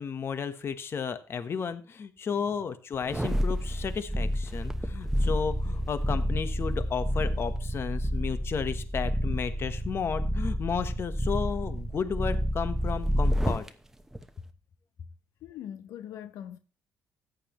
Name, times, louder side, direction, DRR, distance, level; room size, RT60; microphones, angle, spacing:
voice 1, 0.0-13.6, left 6 dB, 45° left, 1.1 m, -33 dB
sound 1, 3.0-13.7 14.1-14.2, equal, 5° right, 1.0 m, -29 dB
voice 2, 15.4-16.6, left 10 dB, 85° left, 0.8 m, -41 dB
14.0 x 9.3 x 3.1 m
cardioid pair, 100°, 6 cm